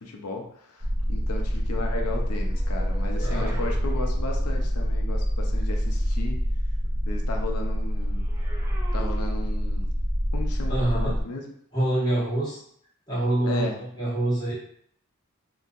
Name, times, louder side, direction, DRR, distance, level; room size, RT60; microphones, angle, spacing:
voice 1, 0.0-6.4 7.1-8.2 8.9-9.8 10.3-11.4 13.4-13.8, left 2 dB, 85° left, 1 dB, 0.6 m, -35 dB
sound 1, 0.8-11.2, equal, 55° right, 0.8 m, -26 dB
sound 2, 2.1-4.9 8.0-9.9 10.8-11.0, right 3 dB, 15° right, 0.5 m, -45 dB
voice 2, 3.2-3.6 10.7-11.2 11.7-12.6 13.1-14.5, right 1 dB, 20° left, -9 dB, 1.2 m, -26 dB
3.9 x 2.8 x 2.6 m, 0.66 s
head